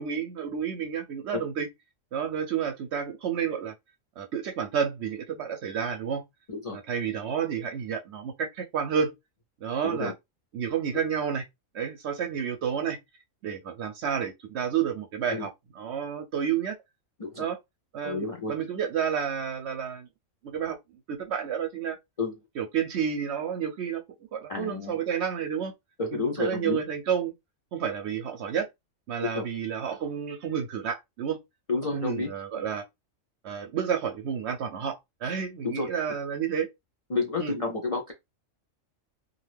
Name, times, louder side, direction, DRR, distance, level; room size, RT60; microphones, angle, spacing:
voice 1, 0.0-1.7 2.1-3.7 4.2-6.2 6.7-9.1 9.6-10.1 10.5-11.4 11.7-13.0 13.4-15.5 15.8-16.8 17.4-17.6 17.9-20.1 20.4-20.8 21.1-22.0 22.6-24.0 24.3-25.7 26.1-27.3 27.7-28.7 29.1-31.4 31.9-32.8 33.4-36.7 37.4-37.5, right 7 dB, 65° right, 0.7 m, -30 dB
voice 2, 18.0-18.5 22.2-22.4 24.5-25.0 26.0-26.8 29.3-29.5 31.7-32.3 35.6-35.9 37.1-38.1, left 3 dB, 50° left, 0.4 m, -30 dB
2.5 x 2.3 x 3.2 m
omnidirectional pair, 1.4 m